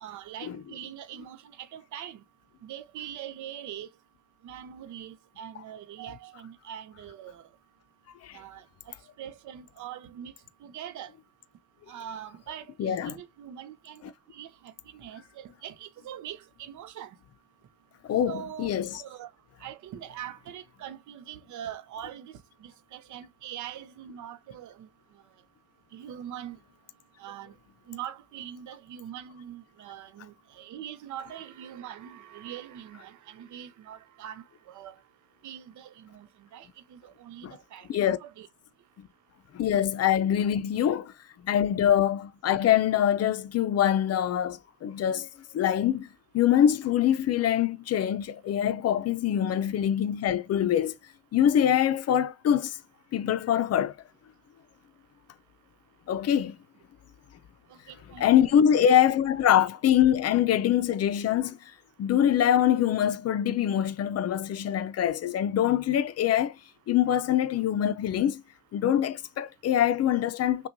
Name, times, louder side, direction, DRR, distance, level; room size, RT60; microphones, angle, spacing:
voice 1, 0.0-2.2 2.6-3.9 4.4-7.4 8.3-8.6 9.2-10.3 10.6-11.1 11.9-14.0 14.3-17.2 18.3-19.3 19.6-24.9 25.9-26.6 27.2-27.5 27.9-35.0 35.4-38.5 57.7-58.3, right 10 dB, 75° right, 0.6 m, -42 dB
voice 2, 12.8-13.1 18.0-19.0 37.4-37.5 37.9-38.2 39.0-39.1 39.5-41.1 41.4-45.3 45.5-46.1 46.3-51.0 51.3-52.8 53.1-54.0 56.1-56.6 58.2-61.6 62.0-66.5 66.9-68.4 68.7-70.7, left 10 dB, 55° left, 0.5 m, -24 dB
5.8 x 2.3 x 2.6 m
cardioid pair, 90°, 30 cm